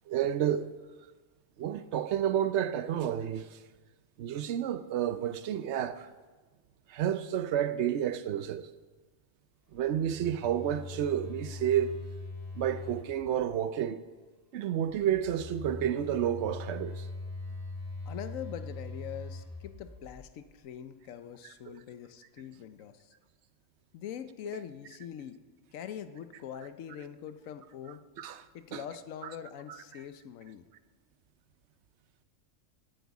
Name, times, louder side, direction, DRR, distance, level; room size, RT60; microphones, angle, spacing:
voice 1, 0.1-0.7 1.6-3.5 4.2-6.1 6.9-8.7 9.7-12.0 12.6-14.0 14.5-17.0 21.7-21.8 28.2-28.4 28.7-28.8, right 10 dB, 65° right, 0.9 m, -30 dB
Telephone, 9.7-13.7 14.8-20.6, left 2 dB, 15° left, 2.4 m, -42 dB
voice 2, 18.1-23.1 23.9-25.4 25.7-28.0 28.5-30.6, left 9 dB, 85° left, 1.1 m, -43 dB
16.5 x 8.0 x 4.8 m
omnidirectional pair, 1.3 m